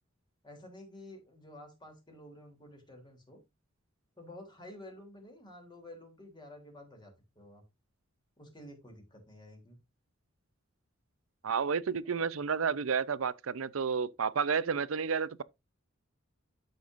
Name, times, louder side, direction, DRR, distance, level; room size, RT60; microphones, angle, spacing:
voice 1, 0.4-3.4 4.2-7.6 8.4-9.8, left 1 dB, 20° left, 3.0 m, -51 dB
voice 2, 11.4-15.4, right 6 dB, 80° right, 0.6 m, -31 dB
12.5 x 5.5 x 2.5 m
head